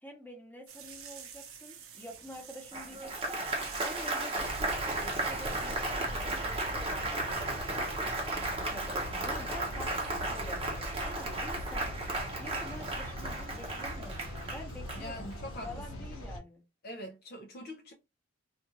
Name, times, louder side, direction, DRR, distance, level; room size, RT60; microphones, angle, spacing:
voice 1, 0.0-3.4 3.8-11.9 12.4-16.6, left 1 dB, 10° left, 0.8 m, -48 dB
sound 1, 0.7-5.9, right 7 dB, 80° right, 0.7 m, -49 dB
Applause, 2.7-15.5, right 2 dB, 25° right, 0.7 m, -35 dB
sound 2, 4.3-16.4, left 1 dB, 80° left, 0.9 m, -42 dB
voice 2, 15.0-16.1 16.8-17.9, left 1 dB, 45° left, 0.5 m, -44 dB
2.5 x 2.4 x 2.9 m
head